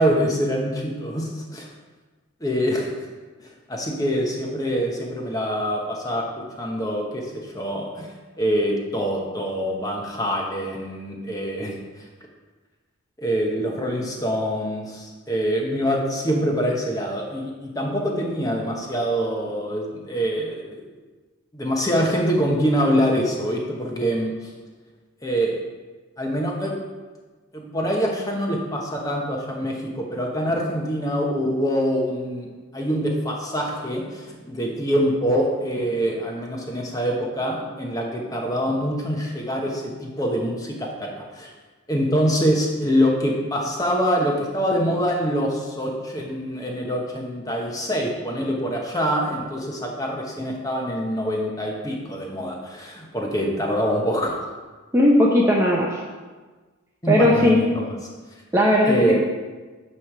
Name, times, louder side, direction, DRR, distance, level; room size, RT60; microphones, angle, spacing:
voice 1, 0.0-1.7 2.4-3.1 3.7-8.1 8.4-12.0 13.2-20.8 21.5-24.5 25.2-25.5 26.2-26.8 27.5-32.5 32.7-41.5 41.9-54.3 57.0-57.9 58.9-59.1, equal, 15° left, -1 dB, 1.0 m, -25 dB
voice 2, 54.9-56.0 57.1-57.7 58.5-59.1, left 1 dB, 10° right, -2 dB, 0.6 m, -17 dB
9.1 x 3.3 x 6.6 m, 1.3 s
head